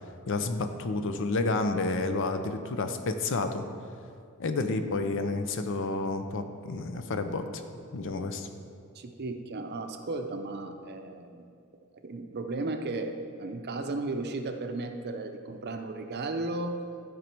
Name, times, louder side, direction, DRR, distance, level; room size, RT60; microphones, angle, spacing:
voice 1, 0.3-3.6 4.4-7.4 7.9-8.5, left 3 dB, 60° left, 8 dB, 0.6 m, -30 dB
voice 2, 8.9-11.5 12.0-16.8, right 2 dB, 50° right, 6 dB, 0.6 m, -35 dB
12.5 x 5.2 x 4.5 m, 2.3 s
head